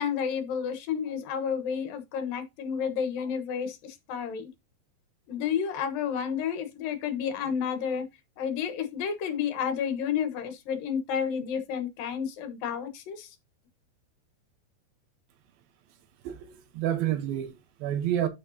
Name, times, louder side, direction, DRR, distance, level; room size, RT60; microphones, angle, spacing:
voice 1, 0.0-4.5 5.3-8.1 8.4-13.3, left 7 dB, 80° left, 3.0 m, -31 dB
voice 2, 16.2-18.3, right 11 dB, 85° right, 2.8 m, -29 dB
11.5 x 5.6 x 2.8 m
omnidirectional pair, 4.1 m